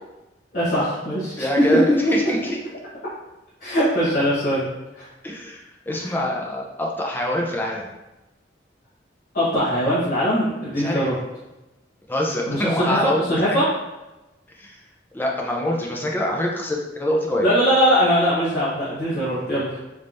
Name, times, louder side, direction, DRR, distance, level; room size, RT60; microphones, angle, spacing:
voice 1, 0.5-2.1 3.6-4.7 4.9-5.1 6.0-6.1 9.3-11.1 12.5-13.6 17.4-19.8, equal, 55° left, -12 dB, 1.2 m, -21 dB
voice 2, 1.4-2.6 5.2-7.9 10.8-11.1 12.1-13.2 14.6-14.8 15.1-17.5, left 1 dB, 10° left, -1 dB, 0.5 m, -25 dB
3.4 x 3.2 x 2.6 m, 1.0 s
head